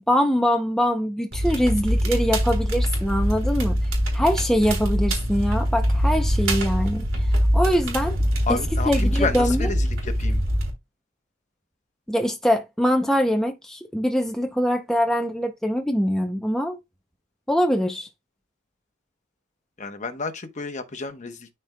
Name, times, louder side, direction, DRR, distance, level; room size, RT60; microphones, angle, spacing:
voice 1, 0.0-3.8 4.1-7.0 7.5-8.2 8.5-8.6 8.9-9.7 12.1-16.8 17.5-18.1, equal, ahead, 0.5 m, -23 dB
Crackle, 1.3-10.7, equal, 65° right, 3.6 m, -23 dB
voice 2, 8.5-10.4 19.8-21.5, left 4 dB, 35° left, 0.9 m, -30 dB
12.5 x 4.4 x 2.2 m
head